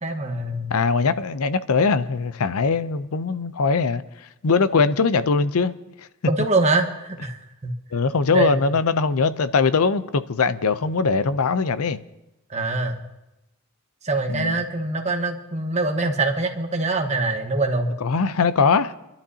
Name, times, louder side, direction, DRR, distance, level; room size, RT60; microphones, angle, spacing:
voice 1, 0.0-0.8 6.3-7.7 8.3-8.6 12.5-13.0 14.0-17.9, right 2 dB, 30° right, 1.2 m, -24 dB
voice 2, 0.7-4.0 4.4-5.7 7.9-12.0 14.3-14.6 18.0-18.9, left 4 dB, 80° left, 0.6 m, -21 dB
27.5 x 12.0 x 2.8 m
head